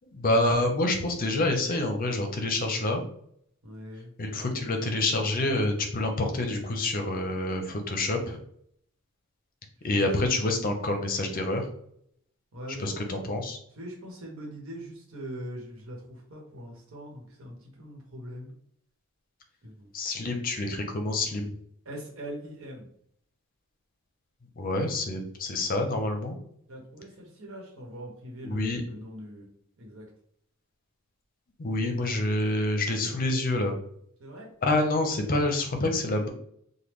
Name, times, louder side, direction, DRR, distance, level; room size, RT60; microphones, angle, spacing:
voice 1, 0.1-3.0 4.2-8.4 9.8-11.7 12.8-13.6 19.9-21.5 24.6-26.4 28.4-28.8 31.6-33.7 34.6-36.3, left 2 dB, 45° left, 4 dB, 0.6 m, -27 dB
voice 2, 3.6-4.1 9.8-10.1 12.5-13.1 13.8-18.5 19.6-19.9 21.8-22.9 26.7-29.5 29.8-30.1 34.2-34.5, equal, 80° right, -1 dB, 1.1 m, -42 dB
3.5 x 2.2 x 3.1 m, 0.68 s
head